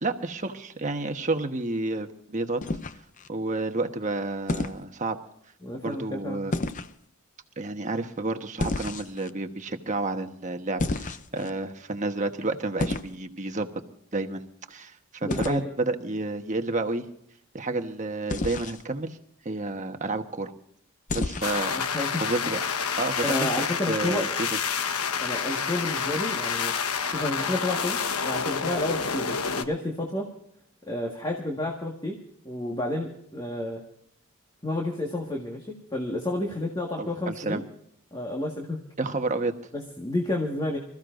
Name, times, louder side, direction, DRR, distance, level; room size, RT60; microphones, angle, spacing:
voice 1, 0.0-2.6 3.3-5.2 5.8-6.5 7.6-13.7 14.1-17.1 17.5-19.2 19.4-20.5 21.1-22.6 23.0-24.5 37.0-37.6 39.0-39.5, right 2 dB, 35° right, 6 dB, 1.2 m, -30 dB
sound 1, 2.6-3.3 4.5-4.8 6.5-6.9 8.6-9.3 10.8-11.5 12.8-13.2 15.3-15.6 18.3-18.8 21.1-21.7, left 2 dB, 35° left, 0.6 m, -30 dB
voice 2, 5.6-6.4 15.2-15.7 21.7-22.2 23.2-24.3 25.2-26.7 27.1-30.3 30.9-32.2 32.4-33.8 34.6-37.6 38.1-38.8 39.7-40.8, left 1 dB, 20° left, 0 dB, 1.7 m, -30 dB
sound 2, 21.4-29.6, left 6 dB, 90° left, 1.2 m, -28 dB
26.0 x 14.5 x 2.6 m, 0.70 s
head